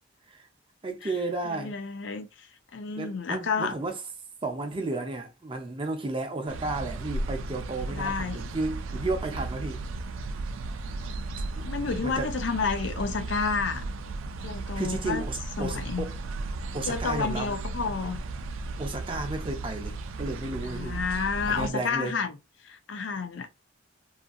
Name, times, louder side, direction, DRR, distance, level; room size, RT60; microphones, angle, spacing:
voice 1, 0.8-1.7 3.0-4.0 4.4-9.8 12.0-12.3 14.8-16.1 16.7-17.5 18.8-21.0 21.5-22.2, right 2 dB, 25° right, 0.5 m, -33 dB
voice 2, 1.4-3.8 7.9-8.6 11.6-13.8 14.4-15.2 15.6-16.1 16.8-18.2 20.6-22.4 22.6-23.5, left 5 dB, 70° left, 0.5 m, -30 dB
sound 1, 6.5-21.7, right 2 dB, 90° right, 0.4 m, -35 dB
2.6 x 2.5 x 2.4 m
head